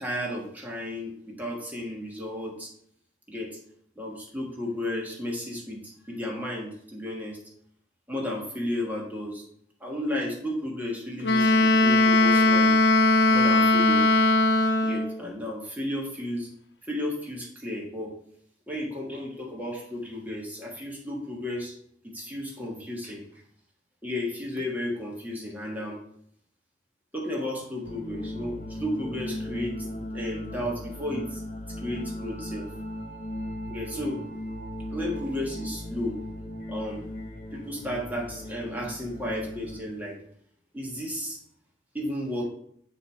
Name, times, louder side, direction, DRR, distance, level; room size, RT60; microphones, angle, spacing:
voice 1, 0.0-2.7 3.3-3.6 4.0-7.4 8.1-9.5 9.8-12.8 13.3-14.1 14.8-16.5 16.9-18.1 18.7-21.7 22.0-23.2 24.0-26.0 27.1-31.4 31.8-32.7 33.7-34.2 34.9-36.2 36.7-37.1 37.5-40.2 40.7-41.4 41.9-42.5, left 1 dB, 10° right, -2 dB, 1.4 m, -33 dB
Wind instrument woodwind instrument, 11.2-15.2, left 2 dB, 80° left, 0.7 m, -19 dB
sound 1, 27.8-39.8, left 1 dB, 45° left, 0.7 m, -37 dB
6.5 x 3.0 x 5.4 m, 0.66 s
head